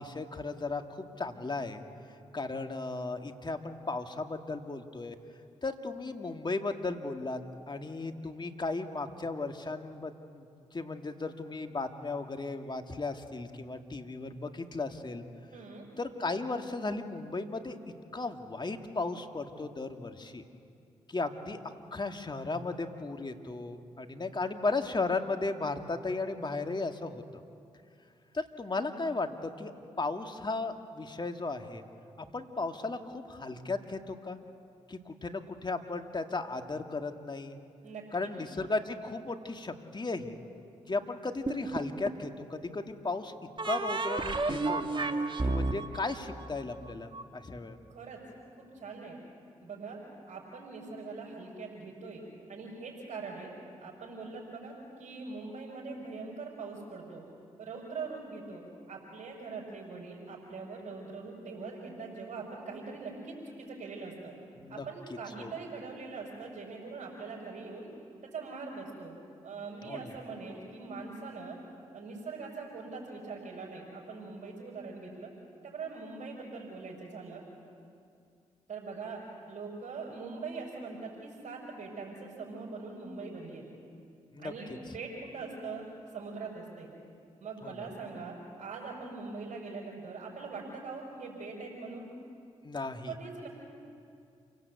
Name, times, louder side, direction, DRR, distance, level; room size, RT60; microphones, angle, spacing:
voice 1, 0.0-1.8 2.3-5.1 5.6-7.4 7.7-10.5 10.7-15.2 16.0-17.8 18.1-20.4 21.1-21.6 21.9-27.4 28.3-29.7 30.0-31.8 32.2-34.4 34.9-37.6 38.1-40.4 40.9-43.3 43.6-44.9 45.4-47.8 64.6-64.9 65.4-65.5 69.8-70.1 84.3-84.5 87.6-87.9 92.6-93.1, left 3 dB, 35° left, 6 dB, 2.1 m, -35 dB
voice 2, 15.5-15.9 37.8-38.3 47.9-48.2 48.7-49.2 49.6-50.0 50.3-52.2 52.5-53.5 53.8-57.3 57.6-64.3 64.7-67.9 68.3-69.2 69.4-71.6 71.9-75.3 75.6-77.4 78.7-79.2 79.5-83.7 84.4-86.9 87.4-92.1 93.1-93.5, right 4 dB, 60° right, -6 dB, 5.7 m, -42 dB
sound 1, 41.5-42.3 43.6-47.2, right 3 dB, 35° right, 1.8 m, -32 dB
28.0 x 17.5 x 8.3 m, 2.4 s
hypercardioid pair, 45°, 14 cm